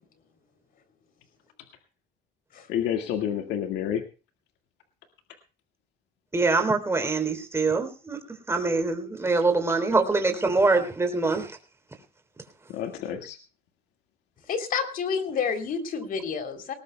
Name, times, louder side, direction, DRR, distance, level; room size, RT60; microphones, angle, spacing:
voice 1, 2.7-4.0 12.7-13.4, left 9 dB, 85° left, 6 dB, 1.9 m, -29 dB
voice 2, 6.3-8.2 8.5-11.6, right 3 dB, 15° right, 5 dB, 3.4 m, -24 dB
voice 3, 14.5-16.7, left 6 dB, 55° left, 8 dB, 3.4 m, -29 dB
19.5 x 19.0 x 2.3 m, 0.34 s
cardioid pair, 110°, 17 cm